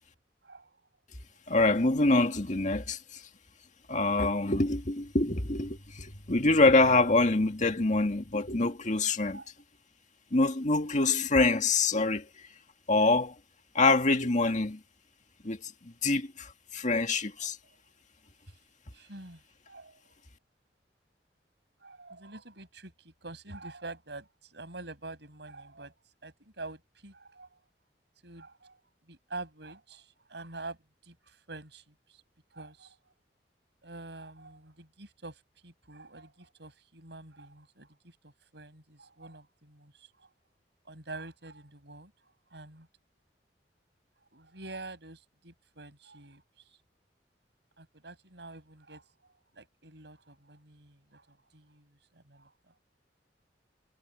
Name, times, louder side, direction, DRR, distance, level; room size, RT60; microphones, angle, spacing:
voice 1, 0.4-0.8 9.3-9.5 17.4-17.8 18.5-18.6 18.9-20.2 21.8-25.9 26.2-27.6 28.2-28.8 29.1-30.8 31.0-32.2 32.5-33.0 33.8-40.3 40.8-42.1 42.5-42.9 44.3-46.8 47.8-49.1 49.5-52.8, right 2 dB, 70° right, 7.6 m, -47 dB
voice 2, 1.5-3.2 3.9-9.4 10.3-12.3 12.9-13.3 13.7-14.8 15.4-17.6, left 3 dB, 45° left, 2.0 m, -25 dB
head